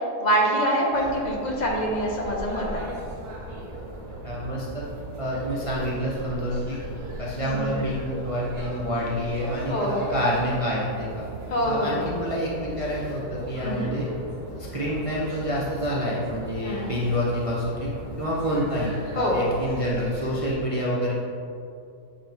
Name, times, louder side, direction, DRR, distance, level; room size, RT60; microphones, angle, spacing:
voice 1, 0.2-2.9 7.4-7.8 9.7-10.1 11.5-12.0 13.6-13.9 16.6-16.9 19.2-19.4, equal, 35° left, -2 dB, 0.9 m, -25 dB
sound 1, 0.9-20.5, right 1 dB, 80° right, 1.9 m, -38 dB
voice 2, 4.2-4.8 5.2-6.8 7.2-11.2 11.6-14.1 14.6-17.9 18.2-21.1, equal, 35° right, -6 dB, 0.5 m, -28 dB
8.8 x 3.8 x 3.5 m, 2.5 s
omnidirectional pair, 1.6 m